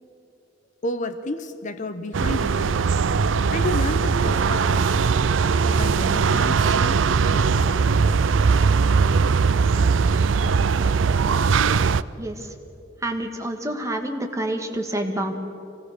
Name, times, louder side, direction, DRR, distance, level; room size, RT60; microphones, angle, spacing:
voice 1, 0.8-3.0 3.5-5.1 5.7-8.0, left 2 dB, 40° left, 10 dB, 0.8 m, -32 dB
sound 1, 2.1-12.0, right 5 dB, 85° right, 0.5 m, -20 dB
voice 2, 12.2-12.5 13.0-15.3, right 1 dB, 15° right, 3 dB, 1.7 m, -28 dB
24.0 x 17.5 x 6.7 m, 2.8 s
head